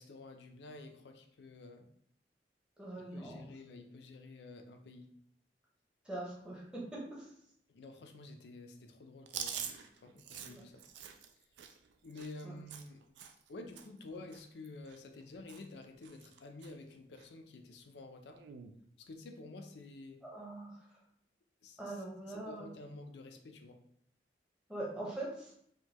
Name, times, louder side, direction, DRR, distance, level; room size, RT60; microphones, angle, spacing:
voice 1, 0.0-1.9 3.0-5.1 7.7-9.6 10.0-10.8 12.0-13.1 13.5-18.4 19.0-20.2 21.6-22.0 22.3-23.8, left 2 dB, 75° left, 5 dB, 0.4 m, -50 dB
voice 2, 2.8-3.5 6.0-7.3 10.5-10.6 12.4-12.5 20.2-21.0 21.8-22.7 24.7-25.5, right 1 dB, 5° right, -5 dB, 0.8 m, -43 dB
Chewing mastication, 9.3-13.5 13.8-14.0 14.3-15.2 15.5-15.8 16.0-16.7 17.2-17.3 18.3-18.7, right 8 dB, 85° right, 0.3 m, -46 dB
3.5 x 2.2 x 2.9 m, 0.67 s
head